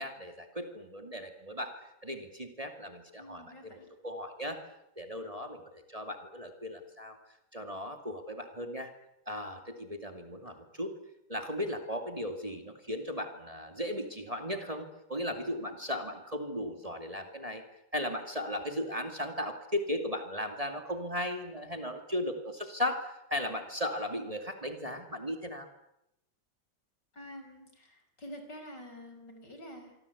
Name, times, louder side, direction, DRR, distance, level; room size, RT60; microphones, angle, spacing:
voice 1, 0.0-1.7 2.0-3.7 4.0-4.6 5.0-7.2 7.5-8.9 9.3-10.9 11.3-17.6 17.9-25.7, left 1 dB, 20° right, 5 dB, 2.6 m, -36 dB
voice 2, 3.2-3.9 10.5-10.6 27.1-30.0, equal, 65° left, 6 dB, 6.2 m, -48 dB
26.0 x 24.5 x 8.6 m, 0.85 s
omnidirectional pair, 2.0 m